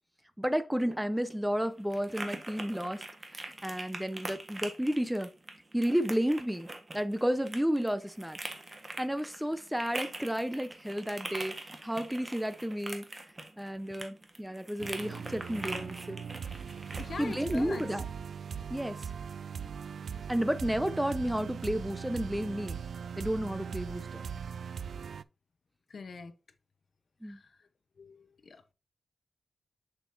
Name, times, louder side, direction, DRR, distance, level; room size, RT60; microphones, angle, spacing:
voice 1, 0.4-3.0 3.3-5.3 5.7-6.7 6.9-8.4 9.0-11.6 11.8-13.0 13.6-16.2 17.2-18.0 18.7-19.0 20.3-22.8 23.2-24.2 27.2-27.4, equal, 5° right, 0.8 m, -32 dB
sound 1, 0.7-17.9, right 2 dB, 30° right, 1.4 m, -44 dB
sound 2, 14.8-25.2, right 7 dB, 80° right, 0.4 m, -40 dB
voice 2, 17.0-17.8 25.9-26.3 27.3-27.4 28.0-28.7, left 4 dB, 55° left, 0.9 m, -43 dB
6.9 x 6.7 x 2.7 m
wide cardioid pair, 115°, 0 cm